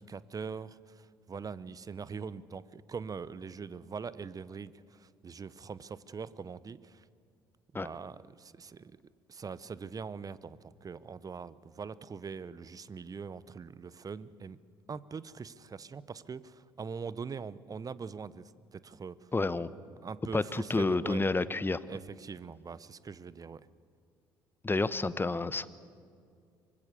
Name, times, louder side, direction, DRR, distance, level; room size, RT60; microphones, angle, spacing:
voice 1, 0.0-7.0 7.8-9.0 9.3-14.6 14.9-19.3 20.0-21.2 21.9-23.7, right 5 dB, 30° right, 18 dB, 0.9 m, -42 dB
voice 2, 19.3-19.7 20.3-21.8 24.6-25.7, left 3 dB, 20° left, 16 dB, 1.0 m, -29 dB
24.5 x 21.0 x 6.8 m, 2.3 s
figure-of-eight pair, 55°, 12 cm